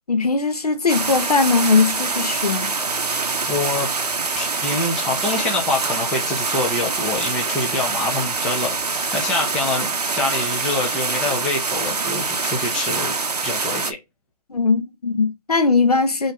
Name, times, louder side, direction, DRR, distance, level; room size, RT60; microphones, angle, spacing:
voice 1, 0.1-2.7 14.5-16.3, left 4 dB, 75° left, 1.3 m, -19 dB
sound 1, 0.9-13.9, right 4 dB, 80° right, 0.9 m, -25 dB
voice 2, 3.5-3.9 4.3-8.8 9.1-9.9 10.1-13.1 13.4-14.0, left 2 dB, 5° left, 0.5 m, -25 dB
6.3 x 2.5 x 3.1 m
figure-of-eight pair, 150°, 20 cm